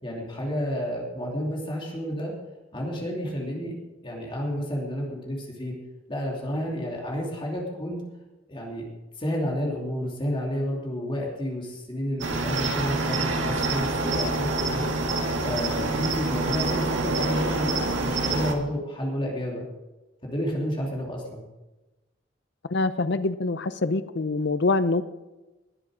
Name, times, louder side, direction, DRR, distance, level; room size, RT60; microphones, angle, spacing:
voice 1, 0.0-2.3 2.7-3.8 4.0-5.8 6.1-8.0 8.5-8.9 9.2-14.9 15.4-19.7 20.2-21.4, equal, 25° left, -1 dB, 2.8 m, -30 dB
Cricket, 12.2-18.5, right 2 dB, 80° right, 1.8 m, -26 dB
voice 2, 22.6-25.0, left 3 dB, 65° left, 13 dB, 0.7 m, -25 dB
20.0 x 7.6 x 4.9 m, 1.1 s
head